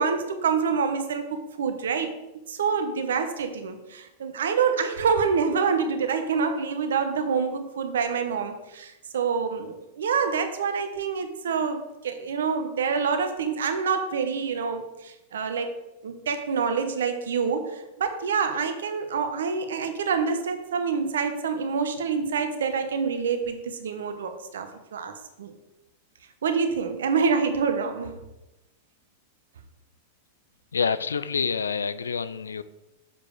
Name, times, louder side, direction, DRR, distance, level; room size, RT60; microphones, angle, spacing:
voice 1, 0.0-2.1 2.5-15.7 16.0-25.1 25.4-25.5 26.4-28.2, right 5 dB, 70° right, 7 dB, 1.0 m, -27 dB
voice 2, 30.7-32.6, left 6 dB, 80° left, 15 dB, 0.4 m, -27 dB
7.2 x 5.0 x 4.8 m, 0.96 s
hypercardioid pair, 100°, 0 cm